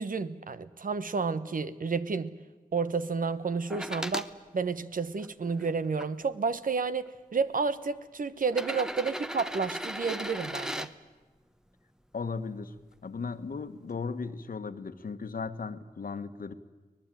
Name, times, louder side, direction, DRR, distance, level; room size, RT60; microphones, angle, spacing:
voice 1, 0.0-2.3 2.7-4.3 4.5-10.9, right 4 dB, 65° right, 13 dB, 1.1 m, -31 dB
sound 1, 3.7-4.3 5.0-6.1 7.1-7.2 8.4-10.9 12.8-12.9, equal, 5° right, 1.0 m, -37 dB
voice 2, 12.1-12.7 13.0-16.5, left 4 dB, 65° left, 10 dB, 1.3 m, -36 dB
24.0 x 19.0 x 9.1 m, 1.2 s
cardioid pair, 65°, 15 cm